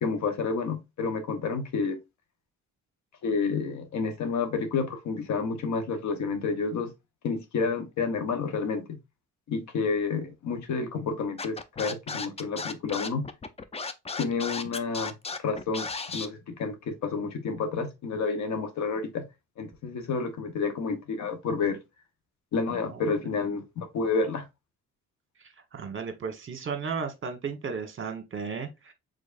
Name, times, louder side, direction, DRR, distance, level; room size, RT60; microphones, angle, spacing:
voice 1, 0.0-2.0 3.2-6.9 7.2-9.0 9.5-13.2 14.2-15.1 15.4-19.2 19.6-21.8 22.5-24.4, left 4 dB, 65° left, 1.1 m, -30 dB
Scratching (performance technique), 11.4-16.3, left 4 dB, 20° left, 0.5 m, -35 dB
voice 2, 22.7-23.3 25.7-28.9, right 5 dB, 40° right, 1.3 m, -35 dB
5.1 x 4.0 x 2.5 m
cardioid pair, 90°, 30 cm